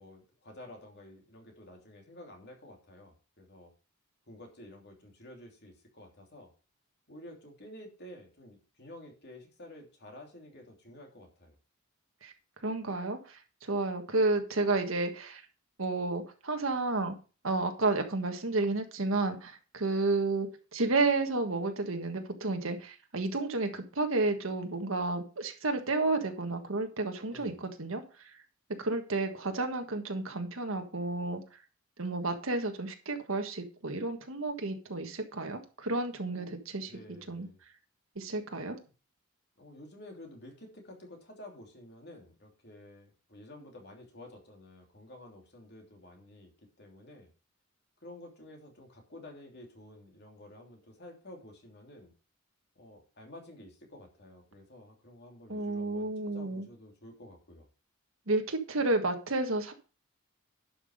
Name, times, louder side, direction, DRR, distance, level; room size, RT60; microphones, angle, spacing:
voice 1, 0.0-3.7 4.3-6.5 7.1-11.5 27.3-27.6 36.3-36.6 36.9-37.6 39.6-47.3 48.0-52.1 52.7-57.7, left 1 dB, 55° left, 1 dB, 3.1 m, -51 dB
voice 2, 12.6-15.4 15.8-17.1 17.4-28.0 28.8-31.4 32.0-36.9 37.3-37.5 38.1-38.8 55.5-56.7 58.3-59.7, right 3 dB, 80° right, 5 dB, 1.5 m, -31 dB
11.0 x 6.0 x 5.0 m, 0.35 s
head